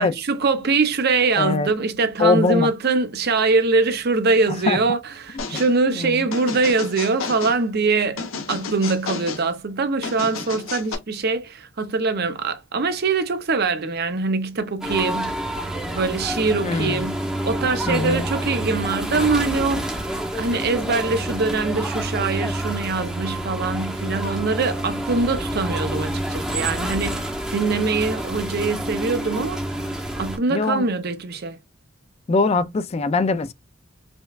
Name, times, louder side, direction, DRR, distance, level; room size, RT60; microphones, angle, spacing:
voice 1, 0.0-8.2 8.5-15.4 15.9-17.1 17.4-27.3 27.5-29.9 30.2-31.6, right 3 dB, 50° right, 0.6 m, -23 dB
voice 2, 1.4-1.7 2.2-2.7 4.7-4.8 5.9-6.2 16.6-17.1 17.9-18.3 30.5-30.9 32.3-33.5, left 3 dB, 30° left, 0.3 m, -21 dB
sound 1, 5.4-5.7 6.3-7.6 8.2-9.4 10.0-11.0, left 5 dB, 80° left, 0.8 m, -31 dB
sound 2, 14.8-30.4, right 1 dB, 5° right, 0.7 m, -28 dB
5.1 x 2.2 x 2.3 m
head